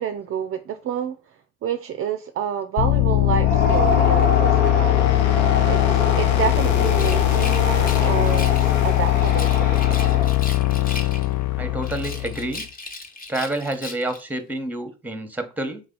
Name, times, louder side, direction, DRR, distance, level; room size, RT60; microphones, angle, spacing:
voice 1, 0.0-1.4 1.6-5.1 5.7-10.0, right 9 dB, 40° right, 0.4 m, -29 dB
sound 1, 2.8-12.6, left 17 dB, 55° left, 0.4 m, -20 dB
sound 2, 3.3-10.5, left 3 dB, 90° left, 0.9 m, -25 dB
Rattle, 6.8-8.7 9.2-11.4 11.8-14.2, left 2 dB, 25° left, 1.0 m, -37 dB
voice 2, 11.6-12.6 13.3-15.8, right 1 dB, 5° right, 1.0 m, -28 dB
3.7 x 3.2 x 3.8 m
hypercardioid pair, 55°, 35 cm